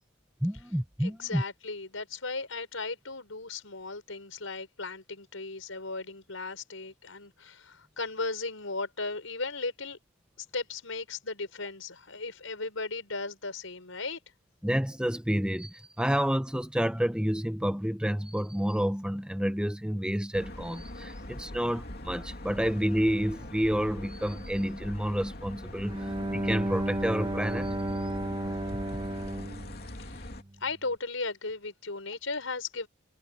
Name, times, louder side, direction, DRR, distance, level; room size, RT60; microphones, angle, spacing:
voice 1, 0.4-1.4 14.6-27.7, equal, 5° right, 1.1 m, -29 dB
voice 2, 1.0-10.0 10.4-14.2 30.0-30.3 30.6-32.9, left 3 dB, 80° left, 5.3 m, -36 dB
sound 1, 20.3-30.4, left 1 dB, 50° left, 3.0 m, -42 dB
Bowed string instrument, 25.9-30.7, right 1 dB, 25° right, 1.4 m, -33 dB
head